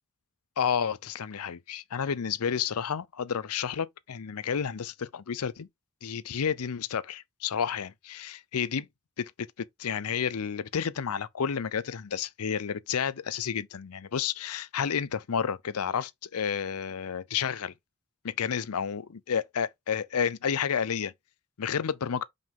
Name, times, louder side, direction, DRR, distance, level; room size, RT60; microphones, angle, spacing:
voice 1, 0.6-5.7 6.0-8.9 9.2-9.3 9.6-17.7 18.2-21.1 21.6-22.2, left 7 dB, 85° left, 0.6 m, -31 dB
5.5 x 5.3 x 3.7 m
head